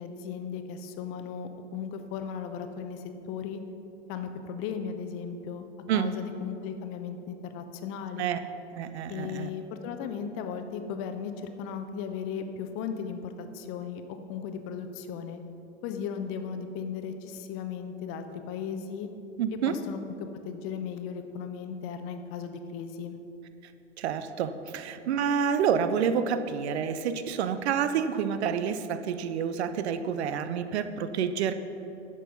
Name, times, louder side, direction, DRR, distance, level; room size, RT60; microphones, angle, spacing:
voice 1, 0.0-3.6 4.1-5.7 5.9-8.3 9.1-15.4 15.8-19.1 19.7-20.0 20.4-23.2, left 7 dB, 35° left, 7 dB, 0.8 m, -36 dB
voice 2, 8.7-9.5 19.4-19.8 24.0-31.5, right 7 dB, 65° right, 11 dB, 0.7 m, -28 dB
10.5 x 6.2 x 5.2 m, 2.9 s
hypercardioid pair, 100°, 36 cm